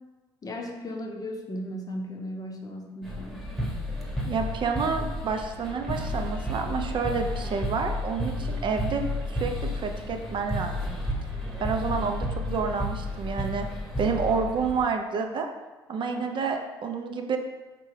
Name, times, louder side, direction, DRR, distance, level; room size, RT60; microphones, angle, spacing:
voice 1, 0.4-3.5 11.8-12.1 16.1-16.3, left 1 dB, 30° left, 1 dB, 0.7 m, -36 dB
sound 1, 3.0-14.9, left 1 dB, ahead, 1.0 m, -32 dB
voice 2, 4.2-9.0 9.3-11.0 11.6-13.7 14.0-15.5 15.9-17.4, right 5 dB, 40° right, 4 dB, 0.5 m, -29 dB
4.5 x 3.4 x 3.2 m, 1.2 s
figure-of-eight pair, 50°, 13 cm